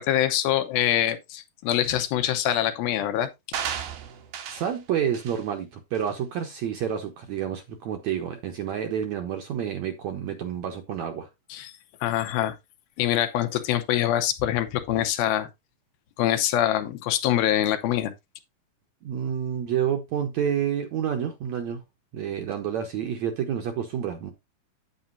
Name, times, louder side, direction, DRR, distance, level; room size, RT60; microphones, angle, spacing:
voice 1, 0.0-3.3 11.5-11.7 12.0-12.6 13.0-15.5 16.2-18.1, left 12 dB, 80° left, 2.7 m, -24 dB
sound 1, 3.5-4.8 5.1-5.4 6.0-6.1, right 8 dB, 85° right, 3.1 m, -34 dB
voice 2, 4.5-11.3 19.0-21.8 22.1-24.3, right 9 dB, 70° right, 1.8 m, -29 dB
9.3 x 8.6 x 2.6 m
omnidirectional pair, 4.3 m